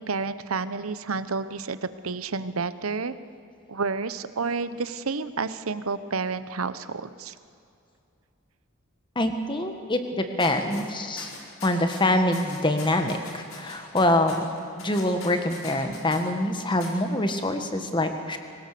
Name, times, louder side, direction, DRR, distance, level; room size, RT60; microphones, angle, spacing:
voice 1, 0.0-3.2 3.7-7.3, right 4 dB, 90° right, 13 dB, 0.9 m, -30 dB
voice 2, 9.2-11.3 11.6-18.4, left 1 dB, 25° left, 6 dB, 1.7 m, -25 dB
sound 1, 10.4-10.8 11.2-12.0 12.3-16.2 16.8-16.9, left 4 dB, 75° left, 4.6 m, -42 dB
24.0 x 19.5 x 6.9 m, 2.5 s
head